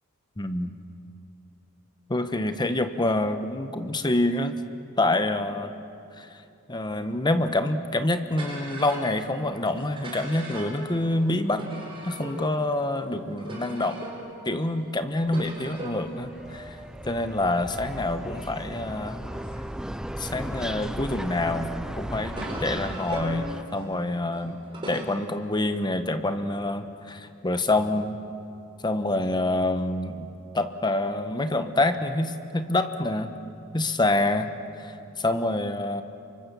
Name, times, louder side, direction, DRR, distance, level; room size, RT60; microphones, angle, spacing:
voice 1, 0.4-0.7 2.1-4.6 5.0-5.7 6.2-6.3 6.7-11.6 12.0-14.0 14.4-16.8 17.0-19.2 20.2-21.7 22.0-23.4 23.7-24.6 24.9-28.2 28.8-30.3 30.5-33.3 33.7-36.0, left 2 dB, 20° left, 9 dB, 1.1 m, -26 dB
sound 1, 8.3-20.9 21.6-25.0, right 1 dB, 25° right, 5.0 m, -40 dB
sound 2, 15.2-23.6, equal, 5° right, 0.6 m, -36 dB
28.5 x 24.5 x 7.1 m, 2.6 s
head